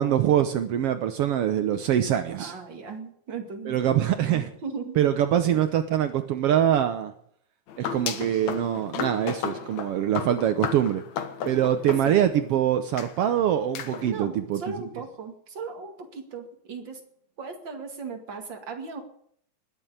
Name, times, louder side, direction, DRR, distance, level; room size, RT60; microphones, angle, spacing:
voice 1, 0.0-2.5 3.6-4.5 5.0-7.1 7.8-11.0 11.4-14.6, right 10 dB, 80° right, 9 dB, 1.3 m, -24 dB
voice 2, 2.4-5.0 5.4-5.6 12.0-12.2 14.0-17.0 17.4-19.0, right 4 dB, 40° right, 4 dB, 2.6 m, -37 dB
sound 1, 7.7-12.5 13.0-13.1 13.7-14.1, left 7 dB, 65° left, 2.4 m, -34 dB
20.5 x 7.8 x 8.6 m, 0.65 s
omnidirectional pair, 3.9 m